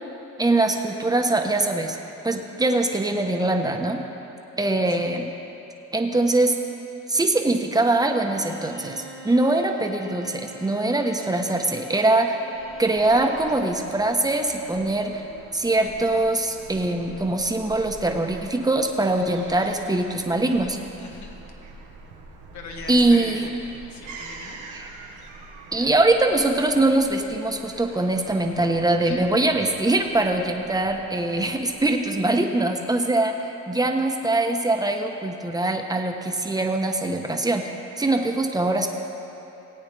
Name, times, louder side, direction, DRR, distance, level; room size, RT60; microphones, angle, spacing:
voice 1, 0.4-2.0 2.2-4.0 4.6-5.3 5.9-6.5 7.1-12.4 12.8-15.2 15.5-20.8 22.9-23.4 24.7-24.9 25.7-37.7 38.0-38.9, right 2 dB, 10° right, 3 dB, 1.0 m, -22 dB
Bowed string instrument, 8.1-13.8, equal, 45° left, 1.4 m, -44 dB
Fowl / Gull seagull, 12.5-32.4, right 3 dB, 90° right, 1.3 m, -45 dB
voice 2, 21.0-21.4 22.5-24.6 29.0-29.2, left 3 dB, 70° left, 1 dB, 1.7 m, -40 dB
19.0 x 8.8 x 3.4 m, 2.9 s
cardioid pair, 90°, 30 cm